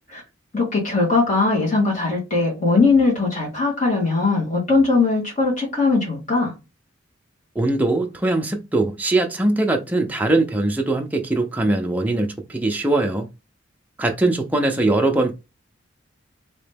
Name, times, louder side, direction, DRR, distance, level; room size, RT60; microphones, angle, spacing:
voice 1, 0.5-6.5, left 3 dB, 40° left, 1.7 m, -20 dB
voice 2, 7.6-13.3 14.0-15.3, right 2 dB, 10° right, 0.5 m, -21 dB
3.2 x 2.9 x 3.4 m
head